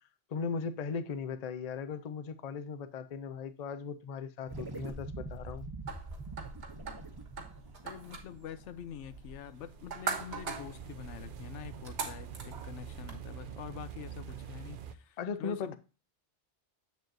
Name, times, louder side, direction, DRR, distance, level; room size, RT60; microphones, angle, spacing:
voice 1, 0.3-5.7 15.2-15.8, left 5 dB, 45° left, 0.6 m, -38 dB
sound 1, 4.5-9.1, right 2 dB, 20° right, 0.8 m, -44 dB
sound 2, 5.9-13.2, right 5 dB, 70° right, 1.7 m, -42 dB
voice 2, 7.8-15.8, left 10 dB, 80° left, 0.9 m, -46 dB
sound 3, 9.4-14.9, right 9 dB, 55° right, 0.7 m, -46 dB
7.4 x 7.2 x 2.5 m
omnidirectional pair, 1.2 m